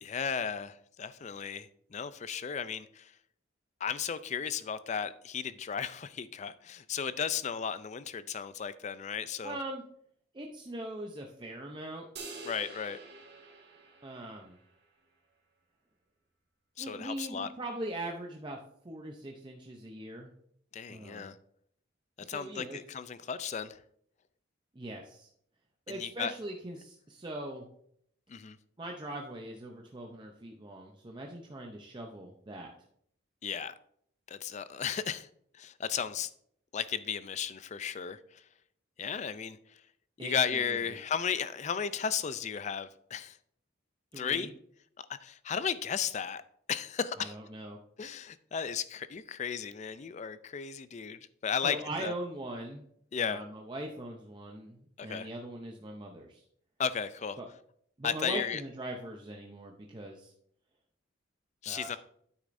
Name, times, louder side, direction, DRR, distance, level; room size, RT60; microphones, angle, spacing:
voice 1, 0.0-3.1 3.8-9.6 12.5-13.0 16.8-17.5 20.7-21.4 22.2-23.8 25.9-26.3 28.3-28.6 33.4-33.7 34.3-35.3 35.5-36.3 36.7-38.4 39.0-39.6 40.2-43.4 44.1-44.5 45.1-46.4 46.7-47.3 48.0-52.1 53.1-53.4 55.0-55.3 56.8-57.4 58.0-58.6 61.6-62.0, left 7 dB, 35° left, 0.4 m, -35 dB
voice 2, 9.4-9.8 10.3-12.1 14.0-14.6 16.8-18.6 18.8-20.3 20.9-21.3 22.2-22.8 24.7-25.3 25.9-27.7 28.8-32.7 40.2-40.8 44.1-44.5 47.2-47.8 51.6-52.8 53.2-56.4 57.4-57.5 58.0-60.3 61.7-62.0, right 1 dB, 25° right, 0.6 m, -41 dB
sound 1, 12.2-14.7, right 3 dB, 55° right, 1.7 m, -47 dB
9.8 x 8.3 x 2.6 m
head